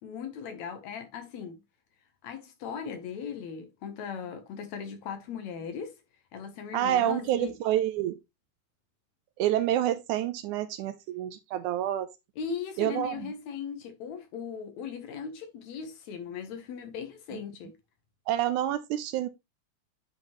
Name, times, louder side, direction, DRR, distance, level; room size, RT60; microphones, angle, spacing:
voice 1, 0.0-1.6 2.2-6.0 6.3-7.5 12.4-17.8, left 6 dB, 65° left, 2.0 m, -38 dB
voice 2, 6.7-8.2 9.4-12.1 12.8-13.2 18.3-19.3, right 12 dB, 80° right, 1.9 m, -28 dB
9.5 x 5.1 x 2.9 m
omnidirectional pair, 3.8 m